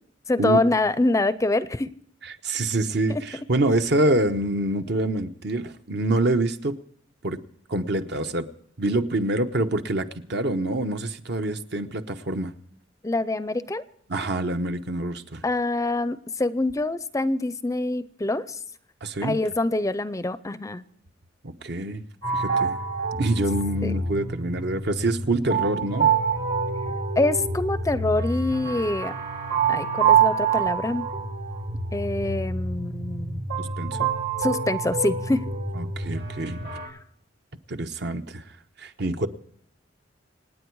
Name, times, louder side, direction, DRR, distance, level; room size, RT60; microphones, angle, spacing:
voice 1, 0.3-1.9 3.1-3.2 13.0-13.8 15.4-18.6 19.2-20.8 23.8-23.9 27.2-29.1 29.7-31.1 31.9-33.4 34.4-35.4, left 2 dB, 15° left, 0.5 m, -25 dB
voice 2, 2.2-6.8 7.2-7.4 7.7-8.5 8.8-12.5 14.1-15.4 19.0-19.4 21.4-22.0 22.3-22.8 23.2-26.1 33.6-34.1 35.8-36.6 37.7-38.4 38.8-39.3, right 2 dB, 65° right, 0.9 m, -26 dB
sound 1, 22.2-36.9, right 6 dB, 85° right, 4.9 m, -26 dB
26.5 x 9.5 x 4.7 m
head